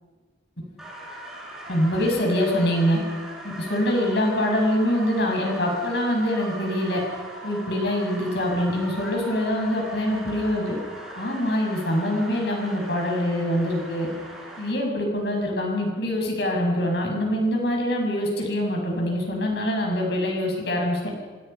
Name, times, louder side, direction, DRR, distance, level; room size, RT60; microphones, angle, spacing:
sound 1, 0.8-14.7, right 1 dB, 5° right, 6.3 m, -40 dB
voice 1, 1.7-3.0 3.6-7.0 7.4-10.8 11.2-14.1 14.6-21.0, equal, 60° left, 0 dB, 7.0 m, -24 dB
28.5 x 26.0 x 5.8 m, 1.4 s
head